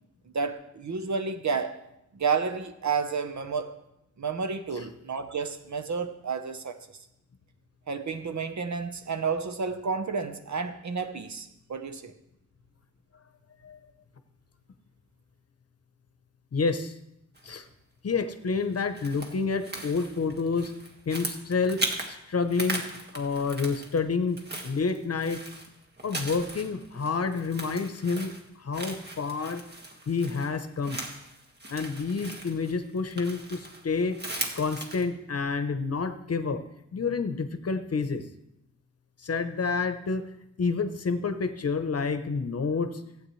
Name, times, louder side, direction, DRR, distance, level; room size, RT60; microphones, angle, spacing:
voice 1, 0.3-1.8 2.1-3.8 4.2-6.8 7.9-12.1, right 5 dB, 70° right, 0.9 m, -31 dB
voice 2, 16.5-16.9 17.4-17.6 18.0-20.7 21.1-22.8 23.1-25.4 26.0-28.3 28.6-29.6 30.1-31.0 31.7-34.2 34.6-36.6 36.9-38.2 39.2-40.3 40.6-43.0, left 4 dB, 55° left, 0.8 m, -29 dB
sound 1, 17.4-17.7 18.5-22.1 22.4-24.0 24.3-35.0, right 1 dB, 35° right, 1.6 m, -38 dB
16.0 x 8.5 x 3.2 m
wide cardioid pair, 95°, 30 cm